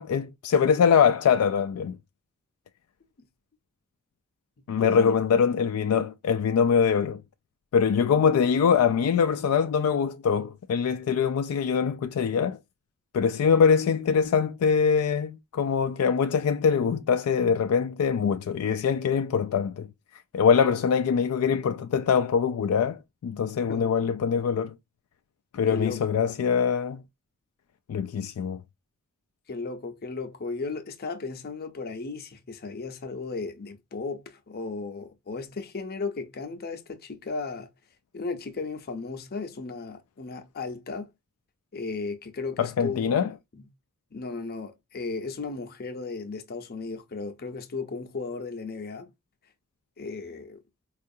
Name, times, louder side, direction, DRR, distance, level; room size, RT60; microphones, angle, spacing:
voice 1, 0.0-2.0 4.7-7.2 7.7-12.6 13.1-19.9 20.3-24.8 25.5-27.0 27.9-28.6 42.6-43.3, left 6 dB, 70° left, 0.3 m, -23 dB
voice 2, 4.6-5.2 23.7-23.9 25.7-26.3 29.5-37.7 38.1-41.1 41.7-43.1 43.5-43.7 44.1-49.1 50.0-50.6, left 4 dB, 45° left, 0.6 m, -35 dB
4.5 x 2.4 x 2.6 m
head